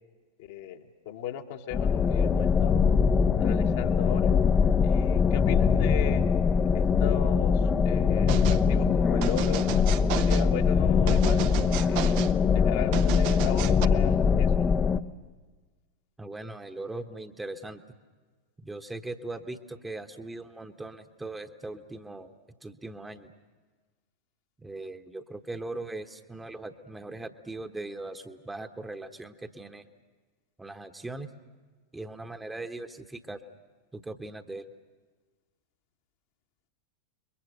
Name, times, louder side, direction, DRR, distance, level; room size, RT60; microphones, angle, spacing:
voice 1, 0.4-2.8 3.3-4.3 4.8-6.2 6.7-9.6 10.2-11.5 11.9-12.2 12.5-14.7, left 10 dB, 50° left, 3 dB, 1.5 m, -37 dB
sound 1, 1.7-15.0, left 6 dB, 20° left, 0.7 m, -23 dB
sound 2, 8.3-8.6 9.2-10.5 11.1-12.3 12.9-13.9, right 14 dB, 45° right, 0.7 m, -33 dB
voice 2, 16.2-17.8 18.6-22.3 22.6-23.3 24.6-29.8 30.6-31.3 31.9-33.4 33.9-34.6, right 2 dB, 10° right, 7 dB, 1.2 m, -39 dB
30.0 x 22.5 x 6.7 m, 1.4 s
figure-of-eight pair, 90°, 0 cm